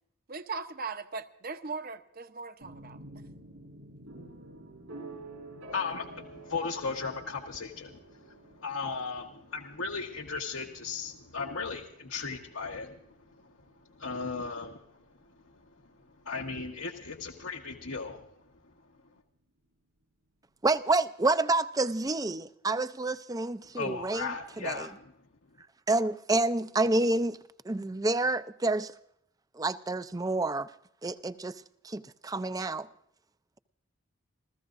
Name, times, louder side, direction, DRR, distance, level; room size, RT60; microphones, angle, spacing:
voice 1, 0.3-3.2, right 4 dB, 45° right, 0.8 m, -39 dB
sound 1, 2.6-16.4, right 2 dB, 80° right, 5.0 m, -50 dB
voice 2, 5.7-13.0 13.4-13.5 14.0-14.8 16.2-18.2 23.7-25.1, left 4 dB, 75° left, 1.2 m, -36 dB
voice 3, 20.6-24.9 25.9-27.4 27.7-28.9 29.6-30.7 31.0-31.5 31.8-32.9, right 2 dB, 15° right, 0.5 m, -28 dB
29.0 x 15.0 x 2.6 m
head